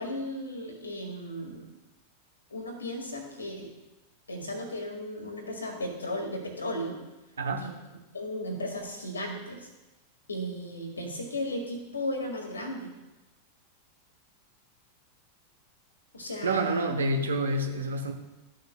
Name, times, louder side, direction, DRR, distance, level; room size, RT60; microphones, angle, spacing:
voice 1, 0.0-1.7 2.5-3.7 4.3-7.0 7.6-7.7 8.1-9.7 10.3-12.9 16.1-16.9, left 1 dB, 75° left, 2 dB, 1.8 m, -35 dB
voice 2, 7.4-7.7 16.4-18.1, right 2 dB, 70° right, 5 dB, 1.0 m, -28 dB
13.5 x 6.5 x 2.2 m, 1.0 s
figure-of-eight pair, 90°, 0 cm